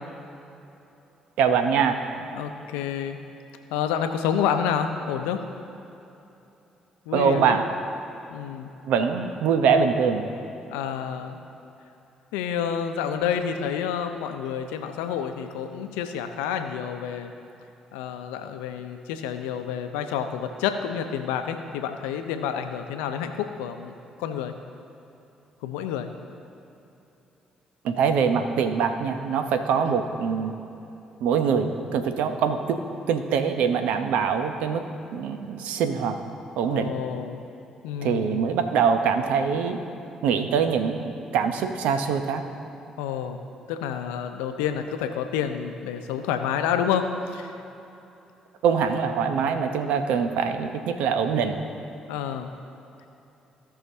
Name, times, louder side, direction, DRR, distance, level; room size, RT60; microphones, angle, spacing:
voice 1, 1.4-2.0 7.1-7.6 8.9-10.3 27.8-30.5 31.2-32.8 33.1-34.8 35.1-36.2 36.6-36.9 38.0-39.8 40.2-41.0 41.3-42.4 48.6-51.6, right 6 dB, 70° right, 7 dB, 0.8 m, -23 dB
voice 2, 2.2-3.2 3.7-5.4 7.1-7.6 8.3-8.7 10.7-11.4 12.3-17.3 17.9-23.9 24.2-24.5 25.6-26.1 29.9-30.0 36.6-37.4 37.8-38.5 43.0-43.4 43.7-47.0 47.3-47.5 52.1-52.5, left 8 dB, 80° left, 7 dB, 0.6 m, -29 dB
16.5 x 5.8 x 2.8 m, 2.9 s
hypercardioid pair, 50°, 2 cm